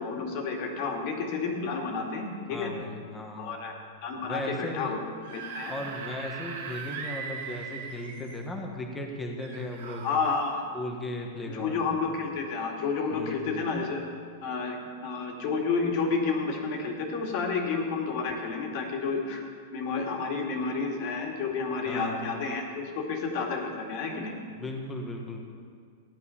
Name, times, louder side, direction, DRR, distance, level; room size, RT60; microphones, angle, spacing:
voice 1, 0.0-2.7 3.4-3.7 4.0-5.0 5.3-5.7 10.0-10.6 11.5-14.0 14.4-19.4 19.7-24.3, left 4 dB, 40° left, 1 dB, 2.0 m, -30 dB
voice 2, 2.5-3.6 4.2-5.0 5.7-10.1 10.7-12.0 13.1-13.8 21.8-22.2 24.5-25.4, left 1 dB, 5° left, 1 dB, 1.3 m, -37 dB
Screaming / Screech, 5.1-8.5 9.4-10.5, right 6 dB, 65° right, 2.1 m, -39 dB
15.0 x 10.5 x 5.7 m, 2.1 s
supercardioid pair, 170°, 0 cm